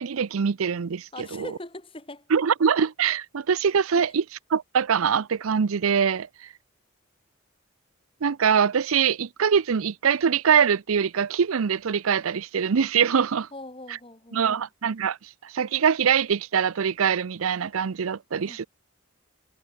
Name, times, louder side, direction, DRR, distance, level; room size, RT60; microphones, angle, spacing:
voice 1, 0.0-1.5 2.3-4.2 4.5-6.3 8.2-13.5 14.3-15.2 15.5-18.7, right 7 dB, 90° right, 0.5 m, -23 dB
voice 2, 1.1-2.3 3.9-4.1 13.5-14.6 18.4-18.7, left 2 dB, 25° left, 1.9 m, -41 dB
head